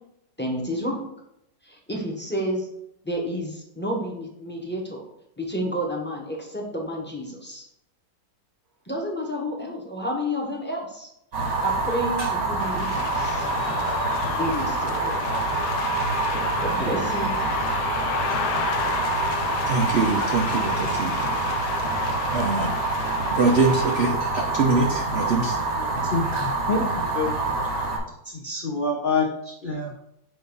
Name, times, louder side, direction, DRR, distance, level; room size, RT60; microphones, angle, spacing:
voice 1, 0.4-1.1 1.6-2.7 3.0-5.0 5.4-7.6 8.8-13.5 14.4-15.4 16.6-17.3, equal, 10° left, -1 dB, 0.8 m, -30 dB
Fire, 11.3-28.0, right 3 dB, 80° right, 2.6 m, -26 dB
sound 1, 12.6-24.1, left 9 dB, 75° left, 1.1 m, -32 dB
voice 2, 19.7-21.2 22.3-22.7 23.3-25.6, right 3 dB, 60° right, 1 dB, 0.6 m, -23 dB
voice 3, 25.5-27.3 28.2-29.9, left 3 dB, 55° left, 0 dB, 0.5 m, -27 dB
7.7 x 2.7 x 5.3 m, 0.78 s
omnidirectional pair, 1.9 m